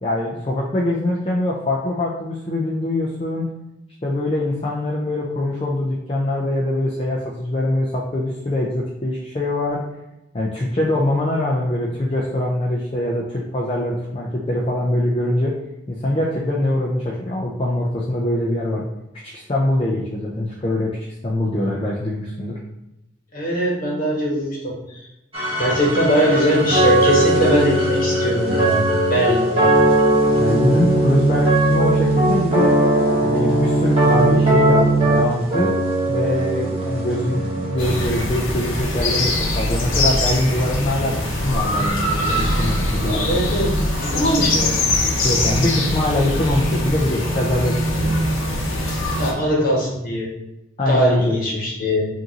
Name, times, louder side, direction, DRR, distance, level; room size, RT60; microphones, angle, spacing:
voice 1, 0.0-3.5 4.0-9.8 10.3-15.5 15.9-18.9 19.2-21.0 21.2-22.5 30.3-32.8 33.2-35.7 36.1-43.2 45.2-48.3 50.8-51.2 51.5-51.6, left 1 dB, 25° left, -4 dB, 0.4 m, -23 dB
voice 2, 23.3-25.1 25.6-29.7 43.0-43.7 44.0-44.7 48.8-50.3 50.9-52.1, equal, 40° left, -3 dB, 1.2 m, -21 dB
sound 1, 25.3-38.1, right 1 dB, 30° right, 1.0 m, -19 dB
sound 2, 37.8-49.3, left 1 dB, 80° left, 0.8 m, -22 dB
5.2 x 2.6 x 2.8 m, 0.91 s
head